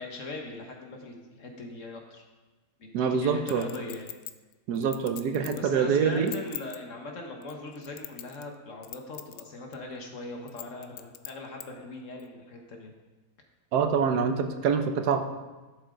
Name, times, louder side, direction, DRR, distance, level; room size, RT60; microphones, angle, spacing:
voice 1, 0.0-2.2 2.8-4.1 5.5-12.9, left 2 dB, 55° left, 2 dB, 1.5 m, -40 dB
voice 2, 2.9-3.7 4.7-6.3 13.7-15.2, right 6 dB, 85° right, 7 dB, 1.3 m, -25 dB
Chink clink, 3.5-5.7 6.1-6.8 7.4-8.5 8.8-9.4 9.7-9.8 10.5-11.7 12.2-12.3, left 12 dB, 70° left, 0.9 m, -41 dB
12.5 x 7.1 x 3.8 m, 1.2 s
omnidirectional pair, 1.7 m